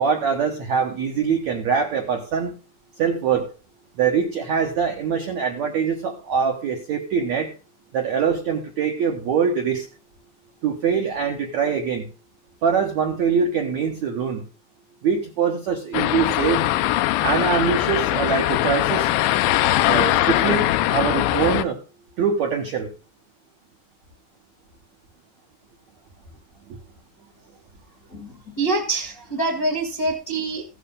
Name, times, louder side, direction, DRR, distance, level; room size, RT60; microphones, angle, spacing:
voice 1, 0.0-2.5 3.0-3.5 4.0-7.5 7.9-9.9 10.6-12.1 12.6-14.4 15.0-16.6 17.2-19.1 19.9-21.8 22.2-22.9 26.7-26.8, right 6 dB, 75° right, 2 dB, 1.7 m, -23 dB
sound 1, 15.9-21.6, left 15 dB, 80° left, 2.8 m, -21 dB
voice 2, 28.1-30.6, right 2 dB, 50° left, 1 dB, 1.0 m, -25 dB
15.5 x 9.2 x 3.8 m, 0.35 s
omnidirectional pair, 5.1 m